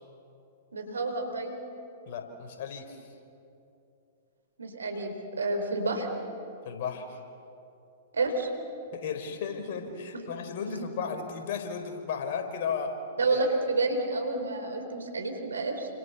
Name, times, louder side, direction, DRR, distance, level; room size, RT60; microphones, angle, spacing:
voice 1, 0.7-1.6 4.6-6.1 8.1-8.5 10.1-10.3 10.7-10.8 13.2-13.5 13.7-15.9, right 3 dB, 85° right, 5 dB, 4.3 m, -30 dB
voice 2, 2.1-3.0 6.6-7.2 8.9-13.0 13.3-13.4, left 6 dB, 55° left, 6 dB, 4.1 m, -34 dB
29.5 x 26.0 x 7.0 m, 2.8 s
hypercardioid pair, 110°, 0 cm